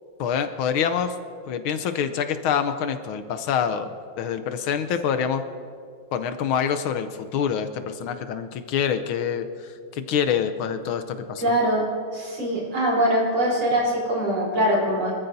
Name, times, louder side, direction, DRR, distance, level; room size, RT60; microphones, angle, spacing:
voice 1, 0.2-1.1 1.5-5.4 6.1-11.4, left 7 dB, 75° left, 9 dB, 1.5 m, -26 dB
voice 2, 11.4-11.8 12.1-15.1, equal, 65° right, -4 dB, 4.7 m, -22 dB
25.0 x 14.0 x 2.7 m, 2.2 s
omnidirectional pair, 2.4 m